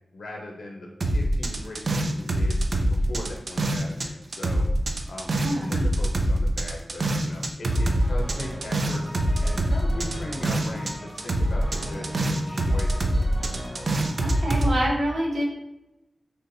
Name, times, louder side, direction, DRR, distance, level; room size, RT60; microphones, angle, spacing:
voice 1, 0.1-0.9 1.1-2.6 2.9-4.6 5.1-13.3, left 1 dB, 85° left, 0 dB, 0.6 m, -39 dB
sound 1, 1.0-4.1 4.3-10.9 11.2-14.7, right 1 dB, 60° right, 0.4 m, -24 dB
voice 2, 5.4-5.7 14.2-15.4, equal, 80° right, -2 dB, 1.0 m, -26 dB
sound 2, 7.7-14.9, equal, 15° right, 1.2 m, -39 dB
3.3 x 2.6 x 4.0 m, 0.94 s
wide cardioid pair, 85°, 0 cm